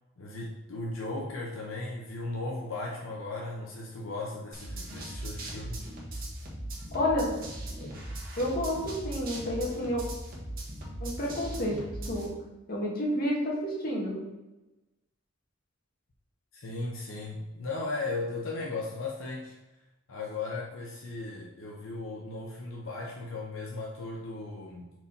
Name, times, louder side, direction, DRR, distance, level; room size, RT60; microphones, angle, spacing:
voice 1, 0.2-5.8 16.5-19.6 20.1-24.9, left 2 dB, 80° left, -2 dB, 0.8 m, -36 dB
sound 1, 4.5-12.3, right 1 dB, 45° right, 1.4 m, -39 dB
voice 2, 6.9-7.3 7.8-7.9 8.4-10.0 11.0-11.8 12.0-12.3 12.7-14.2, left 1 dB, 45° left, -4 dB, 1.9 m, -30 dB
4.6 x 4.1 x 5.4 m, 1.1 s
head